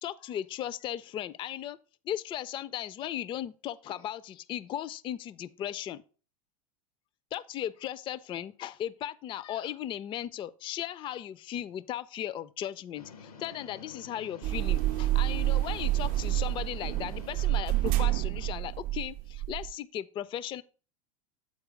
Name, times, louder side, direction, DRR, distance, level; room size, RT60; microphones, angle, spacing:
voice 1, 0.0-1.8 2.1-6.0 7.3-20.6, left 11 dB, 25° left, 0.4 m, -37 dB
sound 1, 12.9-18.0, left 5 dB, 85° left, 0.9 m, -49 dB
sound 2, 14.4-19.7, right 16 dB, 50° right, 0.5 m, -28 dB
8.4 x 4.4 x 5.0 m
hypercardioid pair, 90°, 18 cm